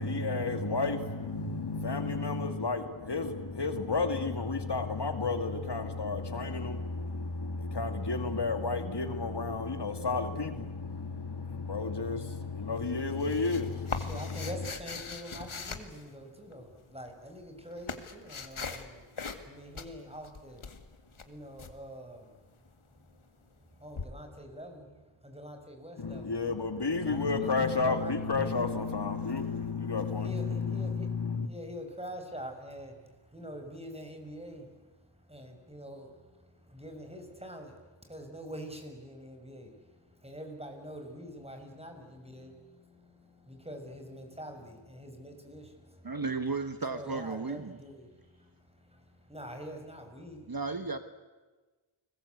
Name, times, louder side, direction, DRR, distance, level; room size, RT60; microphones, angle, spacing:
voice 1, 0.0-14.5 26.0-31.5, left 4 dB, 55° left, 2.4 m, -32 dB
voice 2, 12.4-12.7 14.0-20.6 21.2-22.3 23.1-23.2 23.6-26.3 26.9-28.7 30.2-31.1 31.4-42.5 43.1-46.2 46.9-50.5, equal, 10° right, 6.4 m, -45 dB
sound 1, 12.8-16.6 17.3-18.9 19.2-19.5 19.7-21.7 24.0-24.1, left 5 dB, 75° left, 2.2 m, -40 dB
voice 3, 46.0-47.8 50.5-51.0, right 4 dB, 45° right, 1.5 m, -34 dB
30.0 x 21.0 x 8.4 m
cardioid pair, 45°, 49 cm